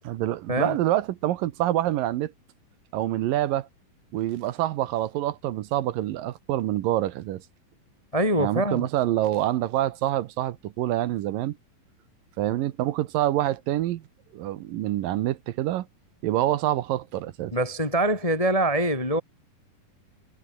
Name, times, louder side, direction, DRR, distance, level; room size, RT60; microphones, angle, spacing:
voice 1, 0.1-2.3 2.9-3.7 4.1-7.4 8.4-11.6 12.4-14.0 14.3-15.9 16.2-17.5, right 14 dB, 70° right, 2.5 m, -26 dB
voice 2, 8.1-8.9 17.5-19.2, right 1 dB, 10° left, 1.9 m, -24 dB
omnidirectional pair, 4.4 m